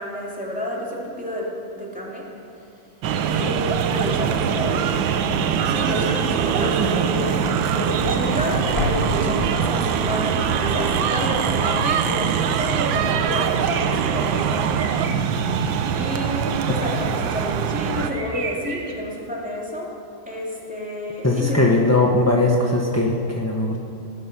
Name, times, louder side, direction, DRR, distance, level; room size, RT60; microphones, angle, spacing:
voice 1, 0.0-1.5 1.7-2.2 3.2-4.9 5.7-14.6 15.9-19.9 20.3-21.8, equal, 5° right, -4 dB, 2.7 m, -29 dB
sound 1, 3.0-18.1, right 7 dB, 80° right, 1.5 m, -22 dB
sound 2, 7.5-10.2, left 1 dB, 30° left, 3.7 m, -30 dB
sound 3, 12.7-18.9, right 4 dB, 40° right, 1.5 m, -39 dB
voice 2, 21.2-23.8, left 2 dB, 15° left, -2 dB, 0.6 m, -19 dB
19.0 x 11.0 x 6.1 m, 2.6 s
omnidirectional pair, 2.1 m